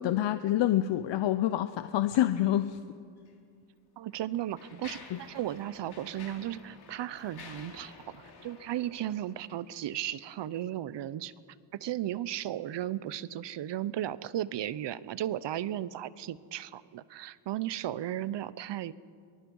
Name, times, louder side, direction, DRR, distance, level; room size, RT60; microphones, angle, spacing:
voice 1, 0.0-2.8 5.1-5.2, left 12 dB, 80° left, 12 dB, 0.7 m, -27 dB
Mechanisms, 3.2-3.3 4.1-9.8, left 5 dB, 60° left, 3.1 m, -51 dB
voice 2, 4.0-11.3 11.8-18.9, right 12 dB, 75° right, 18 dB, 0.8 m, -35 dB
24.0 x 20.5 x 5.4 m, 2.3 s
cardioid pair, 90°, 44 cm